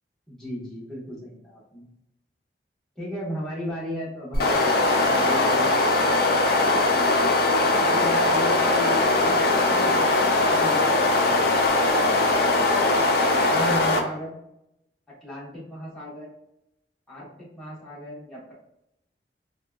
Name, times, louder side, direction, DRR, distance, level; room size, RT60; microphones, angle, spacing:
voice 1, 0.3-1.9 3.0-5.7 7.6-11.8 13.5-14.4 15.2-16.3 17.1-18.6, equal, 5° left, -8 dB, 1.1 m, -35 dB
sound 1, 4.3-14.0, left 2 dB, 60° left, 0.5 m, -20 dB
3.6 x 2.2 x 2.3 m, 0.81 s
head